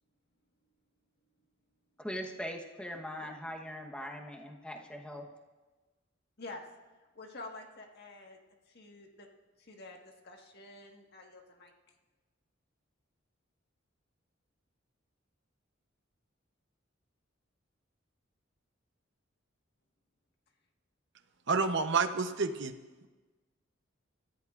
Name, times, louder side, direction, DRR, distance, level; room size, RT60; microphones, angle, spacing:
voice 1, 2.0-5.3, equal, 5° left, 1 dB, 1.1 m, -41 dB
voice 2, 7.1-8.4 8.7-9.3 9.6-11.7, left 2 dB, 55° left, 2 dB, 1.7 m, -48 dB
voice 3, 21.5-22.8, right 4 dB, 65° right, 8 dB, 0.9 m, -29 dB
27.0 x 14.5 x 2.5 m, 1.3 s
head